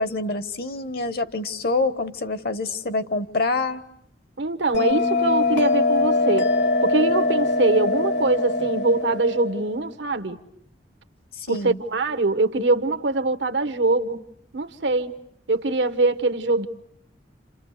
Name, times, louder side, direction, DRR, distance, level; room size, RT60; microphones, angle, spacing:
voice 1, 0.0-3.8 11.4-11.8, left 3 dB, 60° left, 1.1 m, -26 dB
voice 2, 4.4-6.5 6.8-10.4 11.5-14.3 14.5-15.1 15.5-16.7, right 2 dB, 85° right, 1.2 m, -23 dB
Bell, 4.7-9.8, left 3 dB, 75° left, 1.7 m, -22 dB
30.0 x 28.0 x 6.6 m
head